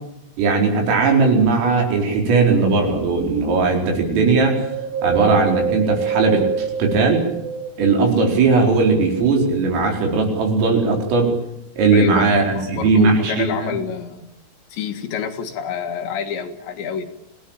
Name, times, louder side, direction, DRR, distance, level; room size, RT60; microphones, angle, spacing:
voice 1, 0.4-4.6 5.0-7.2 7.8-11.3 11.8-13.8, right 4 dB, 80° right, 2 dB, 7.1 m, -18 dB
Wind, 4.5-8.1 8.6-9.8 10.4-10.5, right 7 dB, 60° right, 3.5 m, -26 dB
voice 2, 11.9-14.3 14.7-17.0, left 7 dB, 65° left, 5 dB, 3.8 m, -27 dB
27.0 x 17.5 x 8.9 m, 0.78 s
omnidirectional pair, 5.8 m